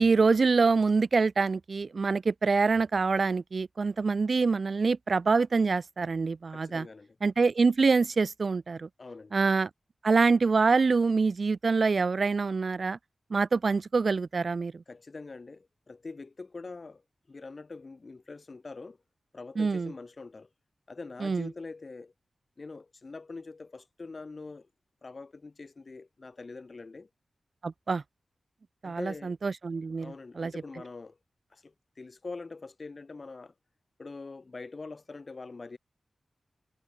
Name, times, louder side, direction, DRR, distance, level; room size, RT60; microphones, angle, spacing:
voice 1, 0.0-6.9 7.2-8.9 9.3-9.7 10.0-13.0 13.3-14.8 19.6-19.9 21.2-21.5 27.6-28.0 28.8-30.5, right 4 dB, 50° right, 0.5 m, -25 dB
voice 2, 6.5-7.2 9.0-9.3 14.9-17.0 17.3-19.0 19.3-20.5 20.9-22.1 22.6-24.7 25.0-27.1 28.8-29.4 30.0-31.2 31.5-33.5 34.0-35.8, left 3 dB, 40° left, 5.0 m, -44 dB
wide cardioid pair, 140°, 0 cm